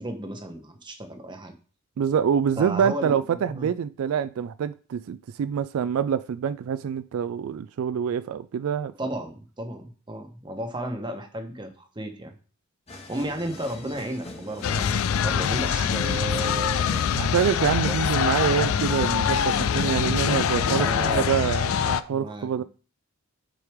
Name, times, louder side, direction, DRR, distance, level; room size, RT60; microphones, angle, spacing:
voice 1, 0.0-1.5 2.6-3.1 3.5-3.7 9.0-12.4 13.1-17.1 17.9-18.6 20.7-21.5 22.1-22.6, right 1 dB, 20° right, 1.1 m, -34 dB
voice 2, 2.0-8.9 17.1-22.6, right 7 dB, 85° right, 0.3 m, -26 dB
sound 1, 12.9-21.5, left 1 dB, 30° left, 1.2 m, -41 dB
sound 2, 14.6-22.0, left 8 dB, 80° left, 0.4 m, -24 dB
7.5 x 4.9 x 3.5 m
head